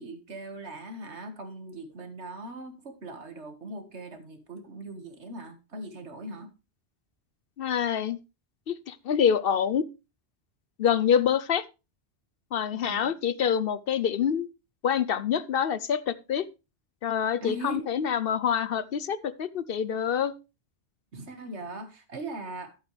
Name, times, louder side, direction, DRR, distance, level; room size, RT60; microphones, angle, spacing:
voice 1, 0.0-6.5 12.7-13.1 17.4-17.8 21.1-22.8, right 2 dB, 80° right, 7 dB, 2.0 m, -40 dB
voice 2, 7.6-8.2 8.7-9.9 10.8-11.6 12.5-14.5 14.8-16.5 17.0-20.3, left 8 dB, 60° left, 16 dB, 0.8 m, -26 dB
11.5 x 8.8 x 3.3 m, 0.28 s
omnidirectional pair, 1.1 m